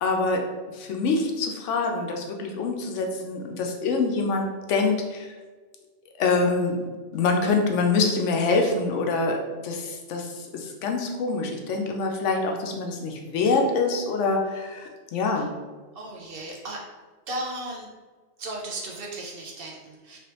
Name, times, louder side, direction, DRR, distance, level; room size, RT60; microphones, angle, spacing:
voice 1, 0.0-5.3 6.2-6.9 7.1-15.5, left 3 dB, 85° left, 2 dB, 0.9 m, -25 dB
voice 2, 15.9-16.9 17.3-17.9 18.4-20.2, right 1 dB, 55° right, -2 dB, 0.8 m, -35 dB
3.2 x 3.1 x 3.0 m, 1.4 s
omnidirectional pair, 1.2 m